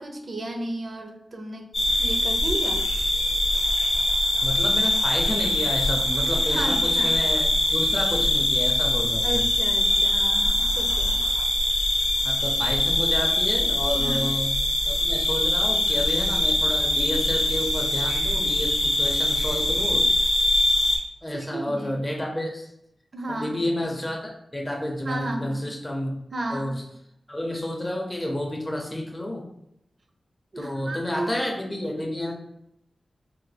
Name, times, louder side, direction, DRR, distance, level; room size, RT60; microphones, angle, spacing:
voice 1, 0.0-1.7 2.0-2.9 6.4-7.2 9.2-11.2 14.0-14.3 21.3-22.0 23.1-23.6 25.0-25.7 26.3-26.8 30.5-31.4, right 1 dB, 55° right, 4 dB, 0.5 m, -33 dB
sound 1, 1.7-21.0, left 1 dB, 70° left, 0.7 m, -23 dB
voice 2, 4.4-9.4 12.2-14.5 14.9-20.1 21.2-22.7 23.3-26.1 26.5-26.8 27.3-29.5 30.6-32.3, left 1 dB, 20° left, 0 dB, 0.5 m, -30 dB
3.3 x 2.1 x 3.2 m, 0.78 s
cardioid pair, 65°, 0 cm